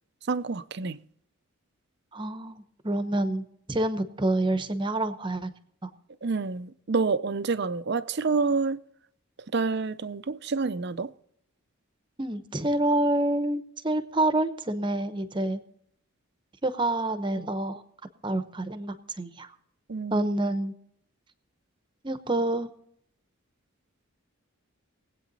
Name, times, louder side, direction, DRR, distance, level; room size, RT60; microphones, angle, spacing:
voice 1, 0.3-1.0 6.2-8.8 9.5-11.1 19.9-20.3, right 4 dB, 50° right, 0.5 m, -28 dB
voice 2, 2.1-5.5 5.8-5.9 12.2-15.6 16.6-17.8 18.2-19.5 20.1-20.7 22.0-22.7, right 1 dB, 20° right, 0.8 m, -27 dB
20.5 x 8.5 x 4.0 m
head